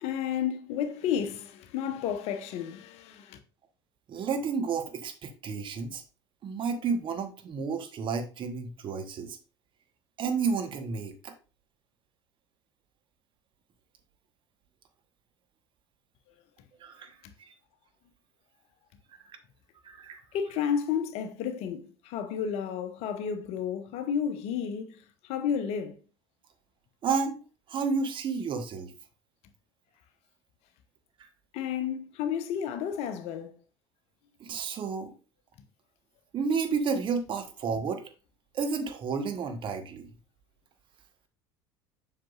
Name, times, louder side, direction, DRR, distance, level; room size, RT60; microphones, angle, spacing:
voice 1, 0.0-3.4 17.2-17.3 20.3-26.0 31.5-33.5, left 8 dB, 50° left, 0.8 m, -32 dB
voice 2, 4.1-6.0 6.4-9.4 10.2-11.3 16.8-17.1 17.5-17.6 19.2-19.4 19.8-20.2 27.0-27.4 27.7-28.9 31.2-31.3 34.4-35.1 36.3-38.0 38.5-40.1, right 5 dB, 35° right, 1.1 m, -31 dB
7.5 x 5.7 x 2.5 m
figure-of-eight pair, 70°, 14 cm